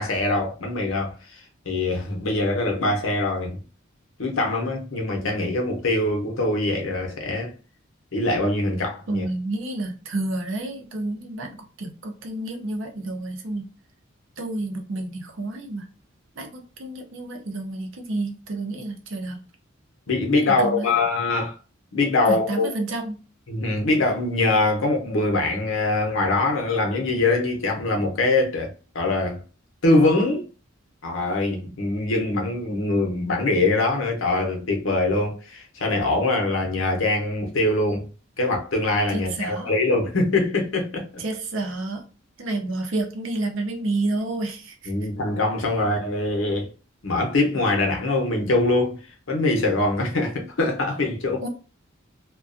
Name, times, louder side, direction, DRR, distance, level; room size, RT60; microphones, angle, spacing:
voice 1, 0.0-3.6 4.2-7.5 8.1-9.2 20.1-21.5 21.9-22.7 23.5-29.4 29.8-30.5 31.0-38.1 38.4-41.2 44.9-46.7 47.0-49.0 49.3-51.4, left 2 dB, 75° left, 0.7 m, -23 dB
voice 2, 9.1-13.6 14.4-15.9 16.4-19.5 20.5-20.9 22.2-23.2 39.1-39.7 41.2-42.1 42.4-44.9 51.4-51.5, right 2 dB, 70° right, 0.6 m, -30 dB
2.4 x 2.2 x 2.4 m
head